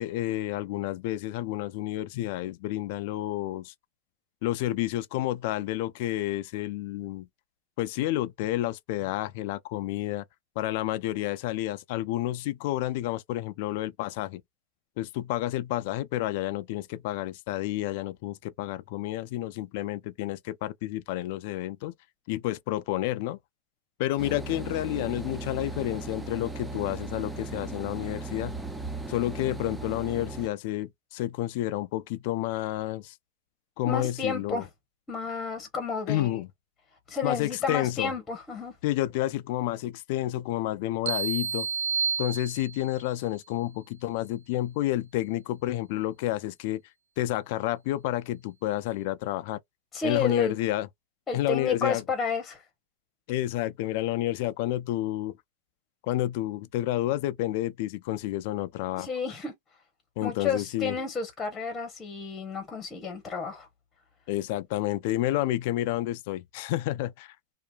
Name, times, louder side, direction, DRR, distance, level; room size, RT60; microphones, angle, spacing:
voice 1, 0.0-3.7 4.4-7.3 7.8-10.2 10.6-14.4 15.0-21.9 22.3-23.4 24.0-28.6 29.1-33.1 33.8-34.6 36.1-36.5 37.2-38.1 38.8-41.7 42.2-46.8 47.2-49.6 50.0-50.9 51.3-52.0 53.3-55.4 56.0-59.1 60.2-61.0 64.3-67.3, left 15 dB, 55° left, 0.4 m, -30 dB
sound 1, 24.2-30.5, right 3 dB, 5° right, 0.5 m, -37 dB
voice 2, 33.9-34.7 35.1-36.4 37.1-38.7 49.9-50.6 51.3-52.6 59.0-59.5 60.2-63.7, left 5 dB, 15° left, 0.9 m, -31 dB
sound 2, 41.1-43.0, right 6 dB, 75° right, 0.3 m, -30 dB
2.7 x 2.5 x 2.2 m
supercardioid pair, 140°, 0 cm